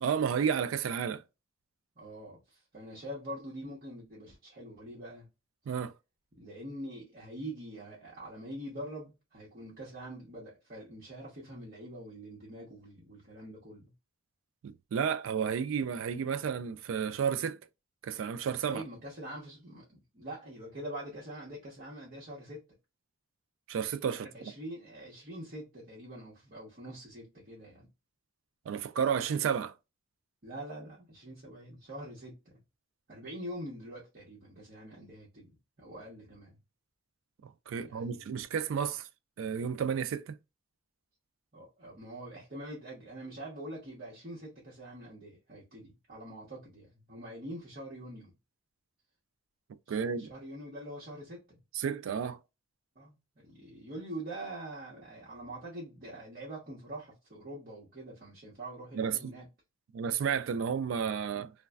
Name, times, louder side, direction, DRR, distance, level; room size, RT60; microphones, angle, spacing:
voice 1, 0.0-1.2 5.7-5.9 14.6-17.6 18.0-18.8 23.7-24.3 28.7-29.7 37.7-39.1 39.4-40.4 49.9-50.3 51.7-52.4 59.0-59.2 59.9-61.5, right 7 dB, 70° right, 0.3 m, -31 dB
voice 2, 2.0-5.3 6.3-13.9 18.7-22.6 24.2-27.9 30.4-32.6 33.1-35.5 35.8-36.5 37.8-38.4 38.9-39.0 41.5-48.3 49.9-51.6 52.9-59.5, right 1 dB, 45° right, 1.0 m, -44 dB
3.1 x 2.2 x 2.3 m
head